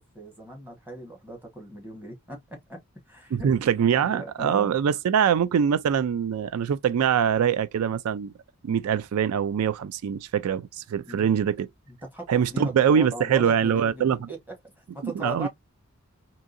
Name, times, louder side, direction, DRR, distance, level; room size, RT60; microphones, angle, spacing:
voice 1, 0.1-2.8 3.1-3.5 4.0-4.7 11.0-11.4 11.9-15.5, right 1 dB, 10° right, 1.2 m, -38 dB
voice 2, 3.3-8.3 8.6-11.7 12.3-14.2 15.0-15.5, right 8 dB, 80° right, 0.3 m, -23 dB
3.6 x 2.8 x 2.5 m
head